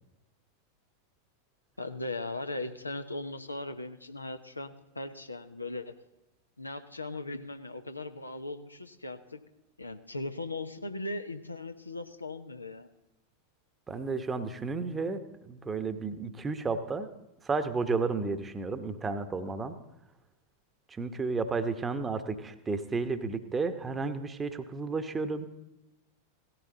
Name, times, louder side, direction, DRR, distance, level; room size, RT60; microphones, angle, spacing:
voice 1, 1.8-5.9 6.6-9.4 9.8-12.9, left 2 dB, 85° left, 8 dB, 0.9 m, -38 dB
voice 2, 13.9-17.1 17.4-19.8 20.9-25.5, right 4 dB, 15° right, 10 dB, 1.1 m, -32 dB
17.0 x 13.5 x 3.9 m, 0.98 s
figure-of-eight pair, 90°, 0 cm